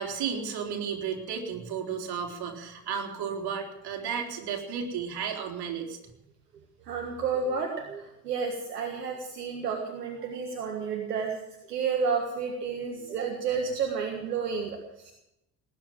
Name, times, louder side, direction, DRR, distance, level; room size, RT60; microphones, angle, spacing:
voice 1, 0.0-6.0, right 7 dB, 50° right, 1 dB, 3.7 m, -33 dB
voice 2, 6.8-11.3 11.7-15.1, right 5 dB, 80° right, 3 dB, 1.7 m, -31 dB
19.0 x 9.8 x 7.5 m, 0.85 s
figure-of-eight pair, 55°, 47 cm